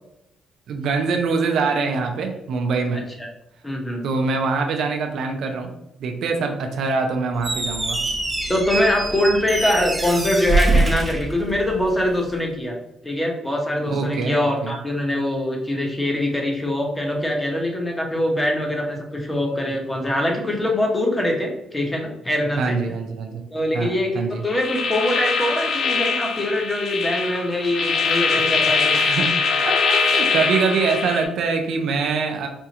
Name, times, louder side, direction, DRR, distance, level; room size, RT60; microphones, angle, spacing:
voice 1, 0.7-3.0 4.0-5.7 6.0-8.0 13.9-14.8 22.6-23.5 23.7-24.4 28.9-29.3 29.6-32.5, right 4 dB, 75° right, 3 dB, 0.6 m, -24 dB
voice 2, 3.6-4.0 8.5-12.7 13.0-22.8 23.5-29.0, left 1 dB, 15° left, 0 dB, 1.0 m, -23 dB
Squeak, 7.3-12.0, right 2 dB, 15° right, 0.6 m, -24 dB
sound 1, 24.5-31.3, left 5 dB, 65° left, 0.5 m, -22 dB
4.4 x 2.4 x 2.8 m, 0.84 s
cardioid pair, 90°, 0 cm